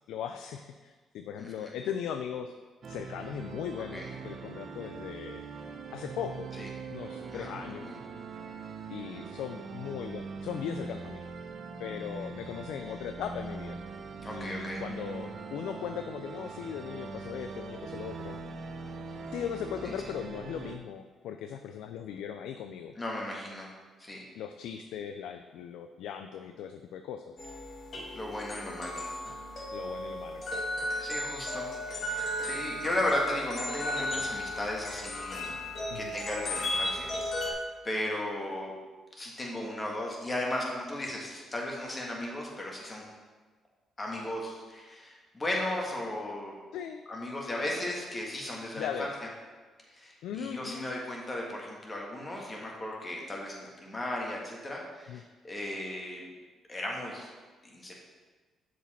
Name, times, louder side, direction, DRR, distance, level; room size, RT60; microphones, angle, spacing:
voice 1, 0.1-2.5 2.9-5.4 5.9-6.5 6.9-7.9 8.9-11.3 11.8-13.8 14.3-18.4 19.3-23.0 24.4-27.3 29.7-30.6 35.9-36.1 38.1-38.2 46.7-47.1 48.8-49.2 50.2-50.9 55.1-55.2, left 8 dB, 85° left, 8 dB, 0.3 m, -38 dB
voice 2, 1.4-1.7 3.9-4.1 6.6-6.7 7.3-8.0 14.2-14.8 19.8-19.9 23.0-23.7 24.0-24.2 28.1-29.2 31.0-35.5 35.9-37.6 37.8-38.7 39.1-43.0 44.0-46.5 47.1-49.1 49.9-56.2 56.7-57.3 57.6-58.0, left 1 dB, 25° left, -2 dB, 1.7 m, -36 dB
sound 1, 2.8-20.8, right 4 dB, 50° right, 0.6 m, -42 dB
sound 2, 27.4-37.5, left 1 dB, 50° left, 1.8 m, -35 dB
6.9 x 5.1 x 4.3 m, 1.4 s
cardioid pair, 90°, 0 cm